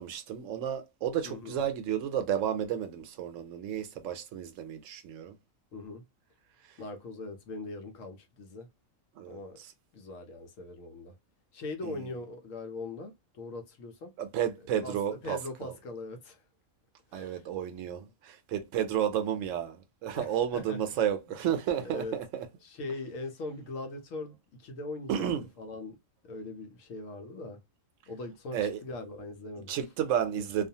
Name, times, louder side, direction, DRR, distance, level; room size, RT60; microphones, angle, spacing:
voice 1, 0.0-5.3 9.2-9.4 11.8-12.0 14.2-15.7 17.1-22.5 25.1-25.5 28.5-28.8 29.7-30.7, right 9 dB, 75° right, 0.9 m, -32 dB
voice 2, 1.2-1.6 5.7-6.0 6.8-8.7 9.3-9.6 9.9-11.1 11.5-14.1 14.8-15.0 15.2-16.4 17.1-17.5 20.1-20.8 21.8-22.2 22.6-25.3 25.6-26.0 26.2-27.6 28.1-29.7, left 2 dB, 75° left, 1.1 m, -41 dB
2.4 x 2.3 x 2.7 m
omnidirectional pair, 1.4 m